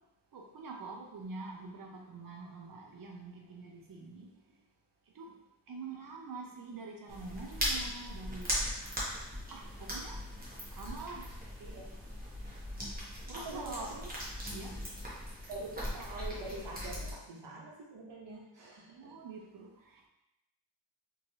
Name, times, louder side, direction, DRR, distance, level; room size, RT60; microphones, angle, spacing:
voice 1, 0.3-4.3 5.1-5.3 5.7-8.5 9.5-10.2 10.7-11.3 13.3-13.9 14.5-14.8 18.9-20.1, right 4 dB, 55° right, 1 dB, 0.7 m, -45 dB
sound 1, 7.1-17.1, equal, 20° right, 0.9 m, -39 dB
voice 2, 13.3-14.1 15.5-19.1, right 2 dB, 90° right, -3 dB, 0.9 m, -45 dB
3.1 x 2.8 x 2.7 m, 0.87 s
wide cardioid pair, 110°, 42 cm